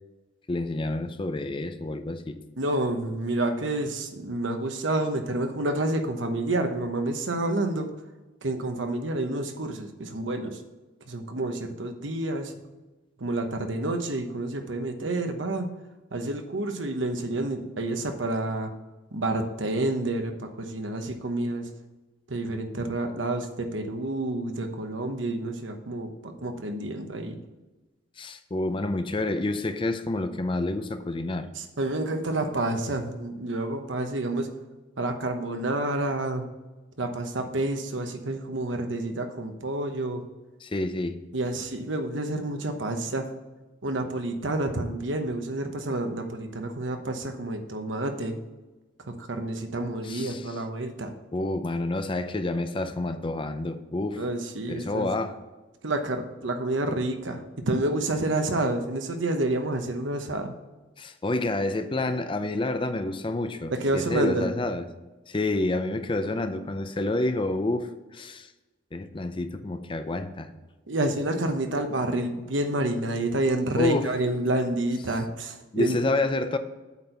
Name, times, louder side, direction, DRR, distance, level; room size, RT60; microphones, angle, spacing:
voice 1, 0.5-2.4 28.2-31.5 40.6-41.2 50.0-50.6 51.3-54.2 54.7-55.4 61.0-64.9 65.3-68.5 68.9-70.5 73.8-74.1 75.7-76.6, left 2 dB, 25° left, 0.5 m, -28 dB
voice 2, 2.6-7.9 8.4-10.6 11.1-12.5 13.2-15.7 16.1-18.7 19.1-21.7 22.3-27.4 31.5-34.5 35.0-36.4 37.0-40.2 41.3-43.3 43.8-48.4 49.1-51.1 54.2-55.1 55.8-60.5 63.8-64.5 70.9-76.0, right 2 dB, 80° right, 1.0 m, -29 dB
8.2 x 4.5 x 6.7 m
head